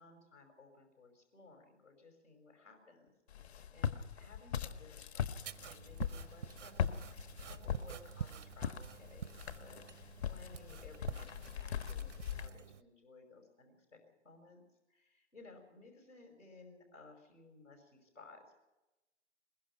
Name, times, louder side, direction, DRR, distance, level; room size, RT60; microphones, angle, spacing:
voice 1, 0.0-18.6, left 3 dB, 90° left, 3 dB, 5.6 m, -59 dB
Walk footsteps, 3.3-12.5, left 8 dB, 60° left, 1.4 m, -40 dB
sound 1, 5.4-12.8, right 8 dB, 75° right, 0.8 m, -48 dB
22.0 x 20.5 x 5.8 m, 1.0 s
figure-of-eight pair, 130°, 36 cm